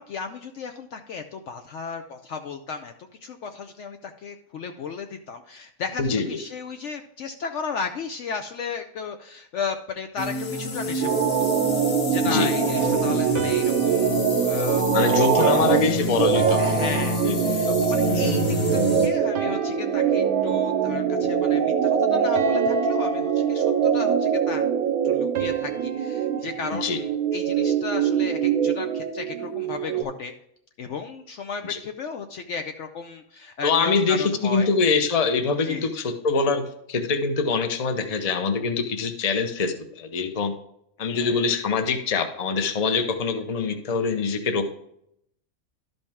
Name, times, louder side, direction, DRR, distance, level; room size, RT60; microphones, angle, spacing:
voice 1, 0.0-2.9 3.2-11.1 11.4-11.8 12.1-15.5 16.6-18.4 18.7-24.6 25.0-30.3 30.8-34.7 35.6-35.9 41.0-41.5, left 5 dB, 65° left, 6 dB, 0.8 m, -35 dB
sound 1, 10.2-19.1, left 2 dB, 85° left, 1.6 m, -28 dB
sound 2, 11.0-30.0, right 8 dB, 80° right, 1.2 m, -23 dB
sound 3, 11.1-12.4 13.4-15.9 16.4-18.1 18.6-18.9 19.4-20.9 21.4-21.7 22.4-24.3 25.4-27.7, right 7 dB, 60° right, 0.9 m, -37 dB
voice 2, 14.9-16.8 17.2-17.8 26.7-27.0 31.7-31.8 33.6-36.6 36.9-40.5 41.0-44.7, left 4 dB, 35° left, 7 dB, 0.7 m, -24 dB
12.0 x 5.3 x 3.5 m, 0.74 s
omnidirectional pair, 1.5 m